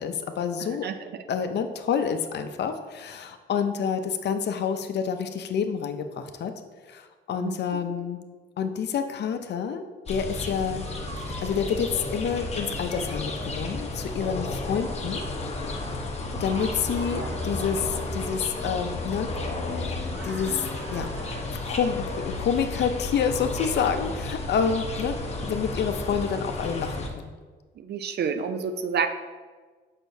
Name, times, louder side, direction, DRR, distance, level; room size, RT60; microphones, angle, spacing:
voice 1, 0.0-0.9 1.3-6.5 6.9-8.2 8.6-10.8 11.2-15.2 16.4-19.3 19.7-21.1 21.7-25.2 25.5-27.3, left 7 dB, 60° left, 8 dB, 0.5 m, -28 dB
voice 2, 0.6-1.1 7.4-7.9 16.2-16.7 17.1-17.4 27.8-29.1, right 6 dB, 55° right, 9 dB, 0.5 m, -31 dB
sound 1, 10.1-27.1, left 2 dB, 30° left, 0.9 m, -32 dB
sound 2, 10.8-11.6 13.0-13.3 14.6-15.0 16.8-18.7 20.0-21.4, right 3 dB, 80° right, 0.9 m, -46 dB
6.2 x 5.7 x 2.7 m, 1.4 s
cardioid pair, 90°, 20 cm